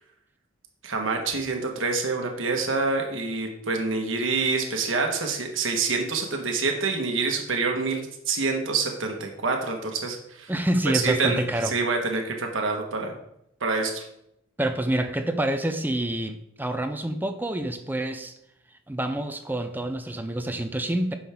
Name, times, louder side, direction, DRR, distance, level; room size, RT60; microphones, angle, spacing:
voice 1, 0.8-10.5 10.9-13.1 13.6-14.0, right 4 dB, 80° right, 3 dB, 1.3 m, -27 dB
voice 2, 10.5-11.7 14.6-18.3 18.9-21.1, right 1 dB, 10° right, 7 dB, 0.5 m, -27 dB
10.0 x 6.3 x 3.6 m, 0.80 s
head